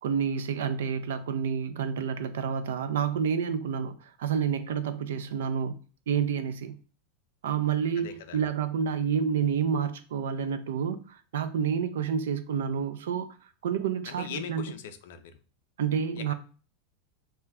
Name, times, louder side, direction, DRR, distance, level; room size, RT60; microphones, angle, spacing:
voice 1, 0.0-5.7 6.1-6.8 7.4-13.3 13.6-14.6 15.8-16.3, right 7 dB, 80° right, 0.3 m, -29 dB
voice 2, 8.0-8.4 14.1-15.4 16.2-16.3, left 8 dB, 75° left, 0.4 m, -41 dB
2.2 x 2.2 x 3.4 m
supercardioid pair, 120°, 0 cm